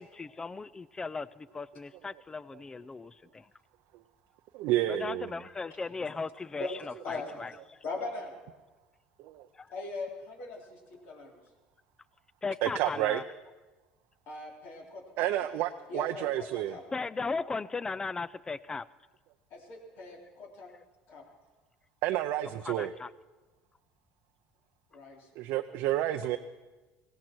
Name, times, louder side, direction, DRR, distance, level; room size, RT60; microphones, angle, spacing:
voice 1, 0.0-3.5 4.9-7.5 9.6-9.7 12.4-13.2 16.9-18.9 20.7-20.8 22.7-23.1, left 4 dB, 20° left, 19 dB, 0.4 m, -37 dB
voice 2, 4.5-5.3 12.6-13.2 15.2-16.8 22.0-22.9 25.4-26.4, right 13 dB, 70° right, 6 dB, 0.6 m, -30 dB
voice 3, 7.0-7.4 7.8-8.3 9.7-11.4 14.3-15.5 15.9-16.8 19.5-20.7 21.1-21.2 24.9-25.3 25.9-26.0, left 3 dB, 60° left, 0 dB, 3.6 m, -40 dB
17.0 x 17.0 x 4.5 m, 1.2 s
supercardioid pair, 100°, 4 cm